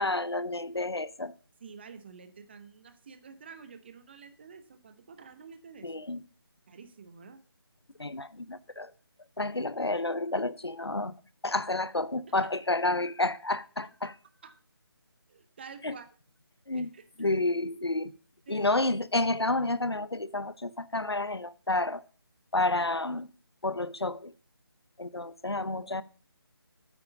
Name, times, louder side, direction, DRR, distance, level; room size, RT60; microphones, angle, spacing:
voice 1, 0.0-1.3 5.8-6.2 8.0-8.9 9.4-11.1 11.4-14.1 15.8-16.0 16.7-16.9 17.2-18.1 18.5-22.0 22.5-23.3 23.6-24.3 25.0-26.0, left 2 dB, 85° left, 0.8 m, -30 dB
voice 2, 1.6-5.9 6.7-7.4 12.3-12.5 14.0-14.1 14.4-14.5 15.3-16.1 16.7-17.3 18.5-18.7, right 5 dB, 25° right, 0.9 m, -49 dB
9.1 x 8.4 x 5.0 m
figure-of-eight pair, 155°, 13 cm